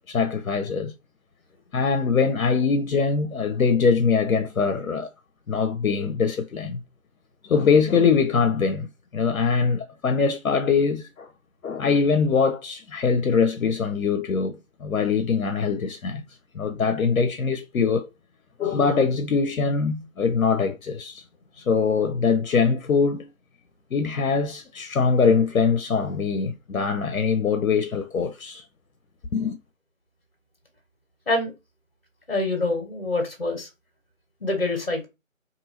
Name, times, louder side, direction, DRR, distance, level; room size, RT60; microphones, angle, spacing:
voice 1, 0.1-0.9 1.7-5.1 5.5-6.8 7.4-8.9 9.1-11.3 11.6-16.2 16.5-18.1 18.6-21.2 21.6-23.3 23.9-28.6 29.3-29.6, left 5 dB, 90° left, 0.6 m, -23 dB
voice 2, 32.3-33.7 34.4-35.1, left 2 dB, 45° left, 1.0 m, -25 dB
2.8 x 2.6 x 2.6 m
figure-of-eight pair, 165°, 41 cm